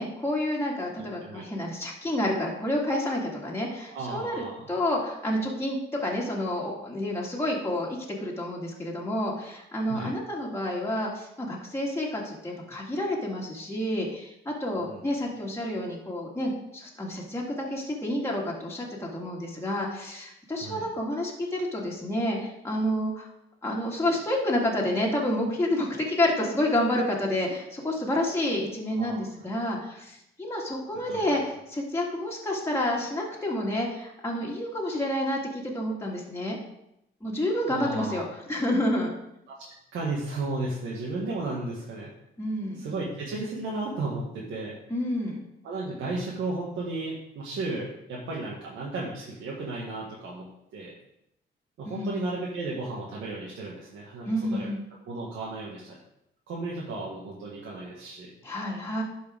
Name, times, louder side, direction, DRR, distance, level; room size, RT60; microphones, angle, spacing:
voice 1, 0.0-17.4 17.7-23.3 23.6-36.6 37.2-39.1 42.4-42.9 44.9-45.4 51.8-52.3 54.2-54.8 58.4-59.0, left 1 dB, 10° left, -3 dB, 2.1 m, -29 dB
voice 2, 1.0-1.4 3.9-4.7 9.9-10.2 14.8-15.0 20.6-20.9 29.0-29.2 29.9-30.0 31.1-31.4 37.7-38.2 39.5-42.1 42.7-44.8 45.6-50.4 50.7-50.9 51.8-54.7 55.1-56.0 56.5-58.3, right 2 dB, 75° right, -4 dB, 1.6 m, -34 dB
11.5 x 4.7 x 3.6 m, 0.80 s
cardioid pair, 90°, 20 cm